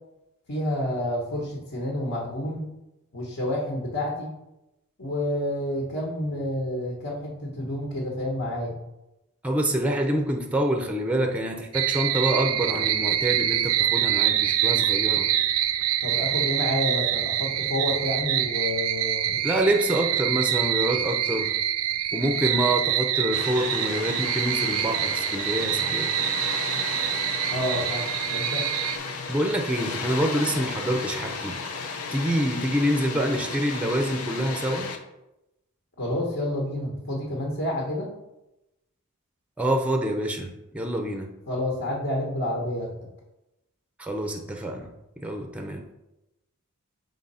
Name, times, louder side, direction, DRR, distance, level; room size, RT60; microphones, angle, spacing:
voice 1, 0.5-2.7 3.1-4.3 5.0-8.7 16.0-19.4 27.5-28.0 28.3-28.6 36.0-38.1 41.5-42.9, left 1 dB, 60° left, -2 dB, 1.3 m, -29 dB
voice 2, 9.4-15.3 19.4-21.5 22.1-26.1 29.3-31.6 32.1-34.9 39.6-41.3 44.0-44.9 45.2-45.8, right 1 dB, 5° right, 3 dB, 0.6 m, -26 dB
sound 1, 11.7-29.0, right 11 dB, 80° right, 0.5 m, -25 dB
Water, 23.3-35.0, left 4 dB, 80° left, 0.7 m, -34 dB
5.3 x 3.9 x 5.5 m, 0.92 s
head